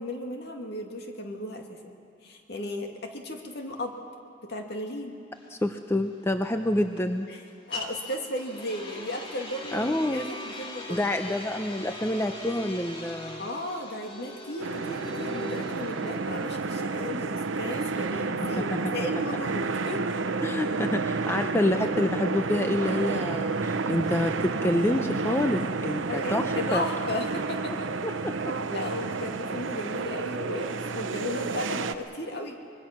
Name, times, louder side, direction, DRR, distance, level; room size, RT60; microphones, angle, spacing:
voice 1, 0.0-4.0 4.4-5.2 6.5-6.7 7.3-7.4 7.7-11.1 13.4-20.5 26.1-27.9 28.7-32.5, left 1 dB, 60° left, 2 dB, 2.3 m, -35 dB
sound 1, 5.3-19.2, left 2 dB, 30° left, 2.0 m, -41 dB
voice 2, 5.5-7.3 9.7-10.3 10.9-13.5 18.6-18.9 20.4-26.4 26.7-26.8 28.0-28.5, left 1 dB, 15° left, 6 dB, 0.6 m, -27 dB
sound 2, 14.6-31.9, right 4 dB, 80° right, 0.9 m, -30 dB
25.0 x 21.5 x 6.0 m, 2.4 s
head